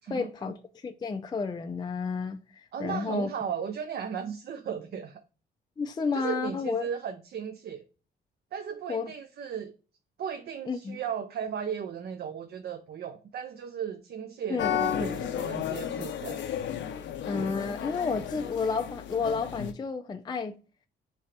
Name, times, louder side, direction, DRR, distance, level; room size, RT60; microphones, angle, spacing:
voice 1, 0.1-3.3 5.8-6.9 8.9-9.1 10.7-11.0 14.5-15.1 17.2-20.6, left 5 dB, 20° left, 0.4 m, -31 dB
voice 2, 2.7-5.2 6.1-7.8 8.5-9.7 10.2-16.4, right 7 dB, 55° right, 0.5 m, -36 dB
sound 1, 14.6-19.7, left 9 dB, 65° left, 0.6 m, -33 dB
3.7 x 3.3 x 4.3 m
cardioid pair, 90°, 20 cm